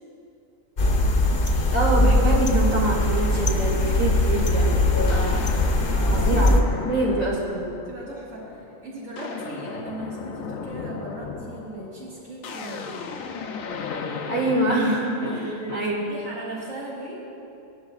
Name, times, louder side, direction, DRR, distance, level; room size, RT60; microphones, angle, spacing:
sound 1, 0.8-6.6, left 1 dB, 45° left, 0.9 m, -20 dB
voice 1, 1.7-5.4 6.1-6.6 6.9-7.7 14.3-15.2 15.7-15.9, right 2 dB, 85° right, -5 dB, 3.0 m, -25 dB
sound 2, 5.1-8.0 8.4-8.7 9.0-16.1, left 5 dB, 80° left, 1.1 m, -35 dB
voice 2, 5.8-6.3 7.8-13.1 15.1-17.2, right 1 dB, 60° right, -10 dB, 3.0 m, -37 dB
19.0 x 10.5 x 2.4 m, 2.7 s
omnidirectional pair, 1.4 m